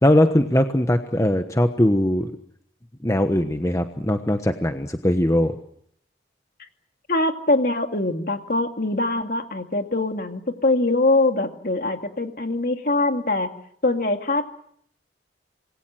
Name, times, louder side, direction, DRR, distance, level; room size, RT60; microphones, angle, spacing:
voice 1, 0.0-2.3 3.0-5.5, left 1 dB, 15° left, 6 dB, 1.1 m, -20 dB
voice 2, 7.1-13.5 13.8-14.5, left 2 dB, 50° left, 5 dB, 2.4 m, -23 dB
27.0 x 21.5 x 7.8 m, 0.70 s
head